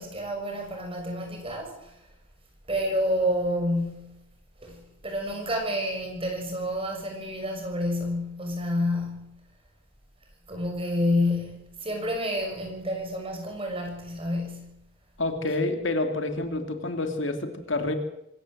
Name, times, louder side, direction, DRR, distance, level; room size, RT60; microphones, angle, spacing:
voice 1, 0.0-1.9 2.7-4.2 4.6-9.4 10.5-14.7 15.5-15.6, left 1 dB, 25° right, 3 dB, 6.3 m, -29 dB
voice 2, 15.2-17.9, left 2 dB, 60° left, 6 dB, 2.6 m, -28 dB
25.0 x 14.5 x 7.8 m, 0.83 s
head